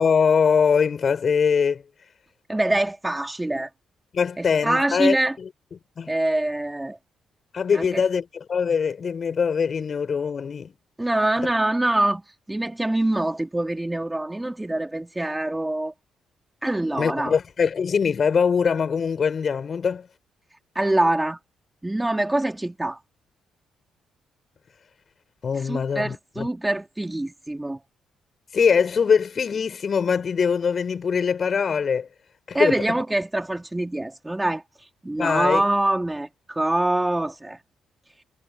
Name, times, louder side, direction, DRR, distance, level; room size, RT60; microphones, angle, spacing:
voice 1, 0.0-1.8 4.1-5.5 6.0-6.1 7.5-10.7 17.0-20.1 25.4-26.5 28.5-32.1 32.5-32.8 35.2-35.6, left 6 dB, 45° left, 7.1 m, -22 dB
voice 2, 2.5-3.7 4.4-5.4 6.1-7.0 7.7-8.0 11.0-12.2 12.5-15.9 16.6-17.4 20.8-21.4 21.8-23.0 25.7-27.8 32.5-34.6 35.0-37.6, right 1 dB, 10° right, 4.0 m, -24 dB
cardioid pair, 90°, 0 cm